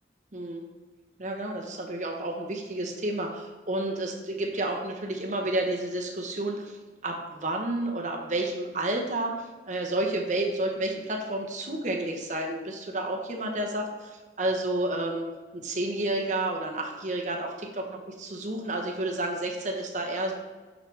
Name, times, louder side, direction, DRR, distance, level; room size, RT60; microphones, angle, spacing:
voice 1, 0.3-0.6 1.2-6.8 7.0-9.3 9.7-15.2 15.5-20.3, right 1 dB, 45° right, 1 dB, 1.0 m, -30 dB
6.5 x 6.2 x 3.4 m, 1.3 s
head